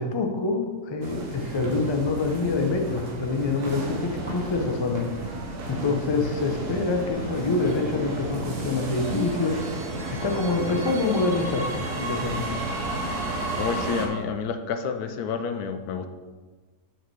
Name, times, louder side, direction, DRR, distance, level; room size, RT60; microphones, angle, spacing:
voice 1, 0.0-5.4 5.7-9.6 10.1-12.6, left 3 dB, 35° left, 3 dB, 0.4 m, -26 dB
sound 1, 1.0-14.1, right 2 dB, 85° right, 1.5 m, -32 dB
voice 2, 13.6-16.1, left 6 dB, 80° left, 8 dB, 1.1 m, -29 dB
5.7 x 4.3 x 6.1 m, 1.3 s
omnidirectional pair, 1.6 m